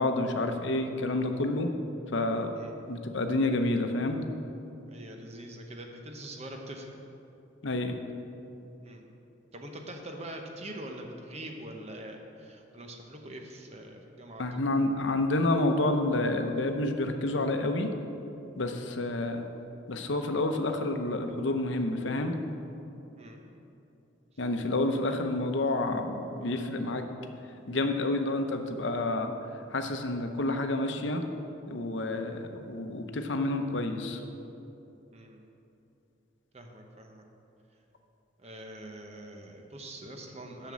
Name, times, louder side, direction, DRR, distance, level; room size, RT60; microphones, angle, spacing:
voice 1, 0.0-1.7 2.1-2.5 2.9-4.2 7.6-8.0 14.4-17.9 18.6-19.5 19.9-22.4 24.4-27.0 27.7-31.3 31.7-34.2, left 2 dB, 70° left, 6 dB, 0.8 m, -29 dB
voice 2, 4.9-7.0 8.8-9.0 9.5-14.5 23.2-23.4 35.1-35.4 36.5-37.2 38.4-40.7, right 1 dB, 35° right, 3 dB, 0.9 m, -43 dB
7.2 x 6.7 x 7.4 m, 2.8 s
head